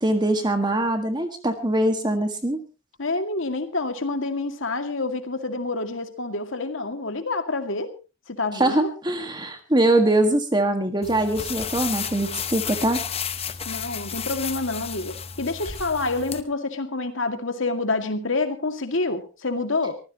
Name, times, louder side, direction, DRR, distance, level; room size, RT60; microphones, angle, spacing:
voice 1, 0.0-2.6 8.5-13.0, right 1 dB, 20° right, 6 dB, 1.7 m, -22 dB
voice 2, 3.0-7.9 8.3-8.9 13.7-19.9, left 3 dB, 75° left, 7 dB, 2.1 m, -27 dB
sound 1, 11.0-16.4, left 7 dB, 30° left, 0.9 m, -32 dB
24.0 x 15.0 x 2.9 m, 0.31 s
head